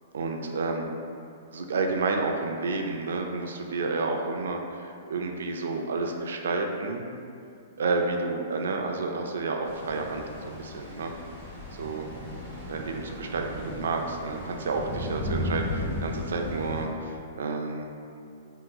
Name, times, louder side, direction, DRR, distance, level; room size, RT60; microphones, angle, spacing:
voice 1, 0.1-0.8 1.5-7.1 7.8-11.1 11.8-12.1 12.7-17.9, right 3 dB, 85° right, 3 dB, 0.3 m, -30 dB
sound 1, 9.6-16.8, left 1 dB, 10° left, 1.1 m, -35 dB
3.5 x 2.8 x 2.3 m, 2.5 s
hypercardioid pair, 165°, 0 cm